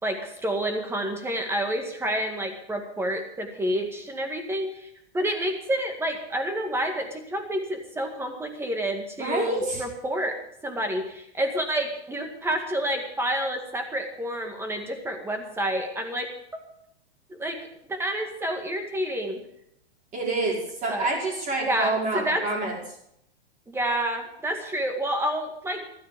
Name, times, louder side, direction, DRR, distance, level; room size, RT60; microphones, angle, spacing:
voice 1, 0.0-10.4 10.6-16.3 17.3-17.6 17.9-19.4 20.9-21.1 21.7-22.5 23.7-25.9, right 1 dB, 5° right, 4 dB, 2.0 m, -29 dB
voice 2, 9.2-9.8 20.1-22.8, right 2 dB, 25° right, -2 dB, 5.4 m, -27 dB
15.0 x 12.5 x 5.2 m, 0.77 s
hypercardioid pair, 145°, 33 cm